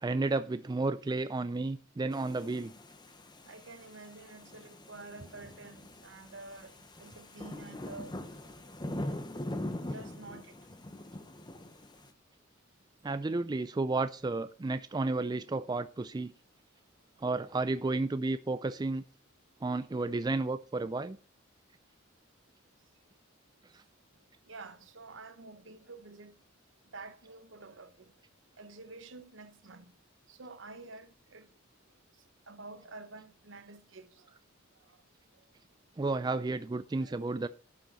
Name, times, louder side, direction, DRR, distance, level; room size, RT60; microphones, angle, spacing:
voice 1, 0.0-2.7 13.0-16.3 17.2-19.0 19.6-21.2 36.0-37.5, right 3 dB, 20° right, 0.3 m, -32 dB
sound 1, 2.1-12.1, left 1 dB, 20° left, 0.9 m, -42 dB
voice 2, 3.4-6.7 7.0-8.1 9.9-10.6 24.5-26.3 26.9-28.1 28.6-29.9 30.3-31.5 32.5-34.3 37.0-37.2, right 3 dB, 65° right, 1.0 m, -49 dB
11.5 x 6.4 x 4.2 m
head